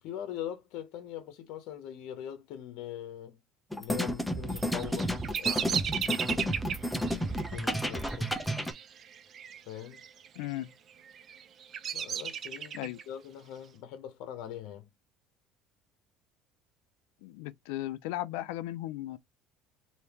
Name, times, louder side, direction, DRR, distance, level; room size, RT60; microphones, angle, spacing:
voice 1, 0.0-3.4 3.8-6.6 7.2-8.3 9.7-10.0 11.9-14.9, left 10 dB, 70° left, 0.8 m, -42 dB
sound 1, 3.7-8.7, equal, ahead, 0.6 m, -31 dB
Bird vocalization bird call bird song, 4.6-9.6 9.9-10.5 11.0-13.0, right 8 dB, 40° right, 0.5 m, -35 dB
voice 2, 10.4-10.7 12.7-13.0 17.2-19.2, left 15 dB, 90° left, 0.4 m, -36 dB
3.4 x 2.8 x 2.9 m
cardioid pair, 125°, 0 cm